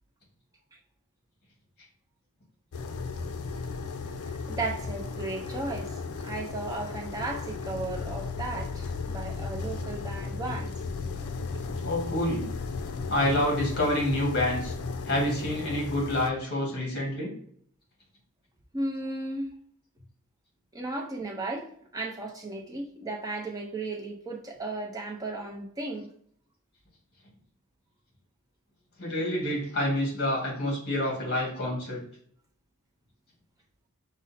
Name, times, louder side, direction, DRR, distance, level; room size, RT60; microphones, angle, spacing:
sound 1, 2.7-16.3, left 4 dB, 80° left, 0.4 m, -35 dB
voice 1, 4.5-6.0 6.2-10.7 18.7-19.5 20.7-21.7 21.9-26.1, right 2 dB, 15° right, 0 dB, 0.6 m, -35 dB
voice 2, 11.8-12.4 13.1-14.7 15.0-17.3 29.0-32.0, left 1 dB, 50° left, -1 dB, 1.6 m, -27 dB
5.1 x 2.1 x 4.1 m, 0.63 s
head